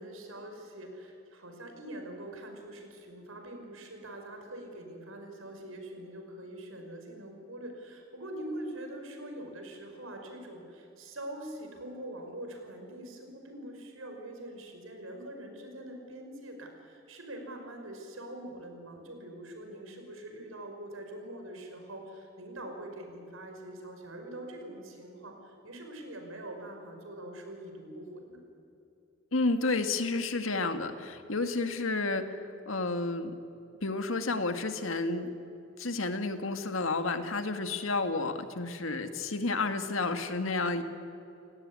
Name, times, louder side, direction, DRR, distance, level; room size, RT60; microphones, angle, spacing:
voice 1, 0.0-28.4, right 1 dB, 85° right, 4 dB, 5.5 m, -44 dB
voice 2, 29.3-32.2 32.7-33.3 33.8-35.3 35.8-40.8, left 3 dB, 75° left, 8 dB, 2.0 m, -31 dB
29.5 x 17.5 x 9.8 m, 2.9 s
head